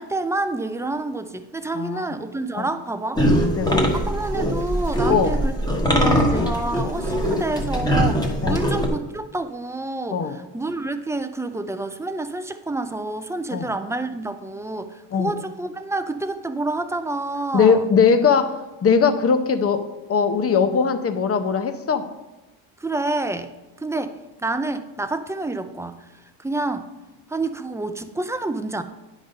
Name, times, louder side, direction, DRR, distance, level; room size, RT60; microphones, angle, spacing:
voice 1, 0.0-3.3 3.9-5.6 5.9-17.8 22.8-23.5 23.8-26.9 27.3-28.8, right 2 dB, 5° right, 9 dB, 0.3 m, -28 dB
voice 2, 1.7-2.1 2.6-2.7 3.2-3.3 3.6-3.8 5.1-5.4 8.4-8.6 10.1-10.4 13.5-13.7 15.1-15.3 17.5-18.6 18.8-19.8 20.1-22.0, left 5 dB, 30° left, 9 dB, 0.7 m, -20 dB
sound 1, 3.2-8.9, equal, 10° left, 1.2 m, -21 dB
9.3 x 4.0 x 5.2 m, 1.1 s
cardioid pair, 95°, 47 cm